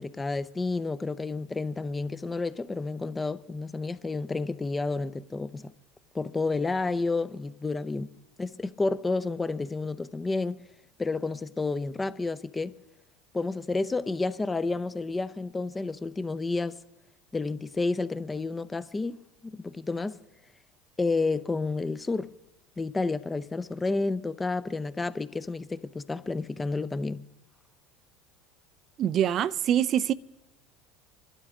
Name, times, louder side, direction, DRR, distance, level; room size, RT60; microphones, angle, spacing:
voice 1, 0.0-5.7 6.1-8.1 8.4-10.6 11.0-12.8 13.3-16.8 17.3-20.2 21.0-22.3 22.8-27.3, left 3 dB, 20° left, 0.6 m, -30 dB
voice 2, 29.0-30.1, right 10 dB, 50° right, 0.4 m, -24 dB
24.0 x 12.0 x 3.7 m
hypercardioid pair, 80°, 0 cm